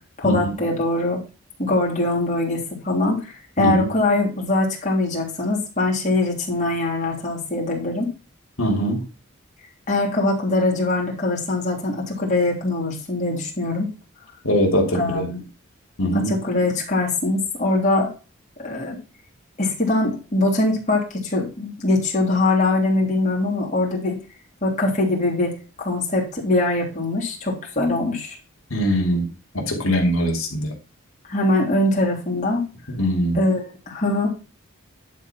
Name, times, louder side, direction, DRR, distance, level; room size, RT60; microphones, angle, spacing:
voice 1, 0.2-1.2 1.6-8.1 9.9-13.9 14.9-15.4 16.1-18.1 18.6-19.0 19.6-24.2 24.6-28.4 31.3-32.6 33.3-34.3, left 2 dB, 35° left, -2 dB, 3.3 m, -22 dB
voice 2, 8.6-9.0 14.4-15.3 16.0-16.3 28.7-29.3 29.5-30.7 32.9-33.4, equal, 80° left, 1 dB, 3.0 m, -21 dB
11.0 x 4.3 x 5.9 m, 0.32 s
head